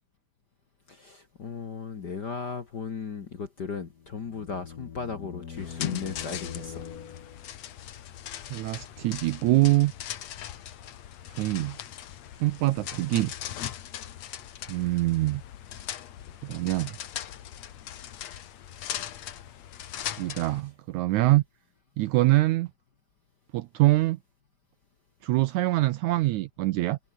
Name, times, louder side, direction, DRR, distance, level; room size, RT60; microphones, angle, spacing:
voice 1, 0.9-6.8, left 5 dB, 45° left, 1.5 m, -36 dB
sound 1, 3.8-7.6, left 7 dB, 80° left, 0.8 m, -43 dB
sound 2, 5.6-20.6, left 11 dB, 60° left, 2.4 m, -39 dB
voice 2, 8.5-9.9 11.3-11.8 12.4-13.3 14.7-15.4 16.4-17.0 20.2-21.4 22.0-22.7 23.5-24.2 25.2-27.0, right 18 dB, 80° right, 1.8 m, -24 dB
omnidirectional pair, 4.0 m